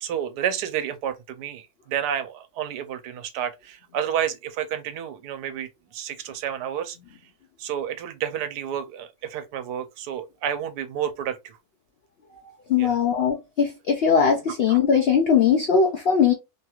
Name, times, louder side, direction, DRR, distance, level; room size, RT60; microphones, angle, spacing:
voice 1, 0.0-7.0 7.6-11.6 12.8-13.0 14.7-14.8, right 9 dB, 90° right, 1.1 m, -30 dB
voice 2, 12.7-16.3, left 6 dB, 90° left, 0.5 m, -20 dB
3.1 x 2.3 x 2.8 m
omnidirectional pair, 1.7 m